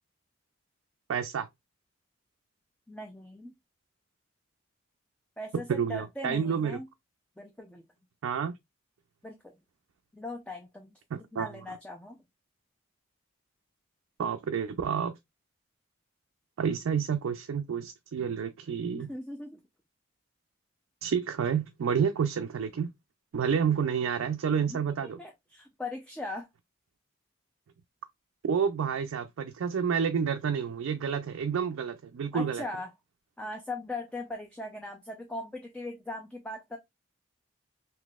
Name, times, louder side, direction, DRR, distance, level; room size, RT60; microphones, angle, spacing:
voice 1, 1.1-1.5 5.7-6.8 8.2-8.5 11.1-11.5 14.2-15.1 16.6-19.1 21.0-22.9 23.3-25.2 28.4-32.6, right 7 dB, 85° right, 0.4 m, -29 dB
voice 2, 2.9-3.5 5.4-6.9 7.4-7.8 9.2-9.5 10.1-11.0 11.3-12.2 18.9-19.6 24.7-26.5 32.3-32.9 33.4-36.8, left 1 dB, 5° left, 0.4 m, -39 dB
3.9 x 2.8 x 2.3 m
head